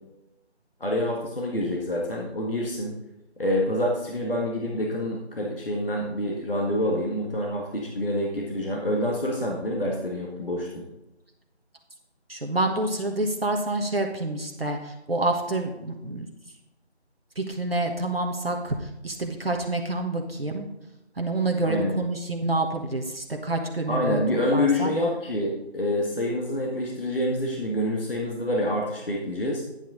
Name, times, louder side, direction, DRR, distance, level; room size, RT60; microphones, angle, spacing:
voice 1, 0.8-2.9 3.4-10.8 21.6-21.9 23.9-29.6, left 1 dB, 55° left, -2 dB, 1.8 m, -27 dB
voice 2, 12.3-16.3 17.4-20.7 21.2-24.2 24.5-24.9, right 2 dB, 60° right, 3 dB, 1.2 m, -28 dB
11.0 x 8.1 x 3.9 m, 0.95 s
figure-of-eight pair, 170°, 34 cm